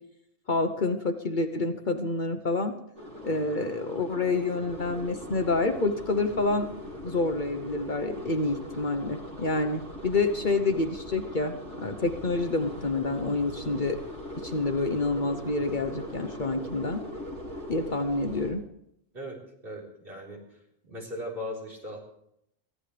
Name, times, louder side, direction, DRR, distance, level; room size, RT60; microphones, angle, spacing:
voice 1, 0.5-2.7 3.2-6.7 7.0-14.0 14.4-17.0 17.7-18.6, left 3 dB, 45° left, 6 dB, 1.0 m, -28 dB
sound 1, 3.0-18.5, equal, 90° right, 3.8 m, -40 dB
voice 2, 19.6-20.6 20.8-22.0, left 1 dB, 55° right, -2 dB, 4.5 m, -38 dB
23.5 x 15.5 x 3.3 m, 0.77 s
omnidirectional pair, 1.2 m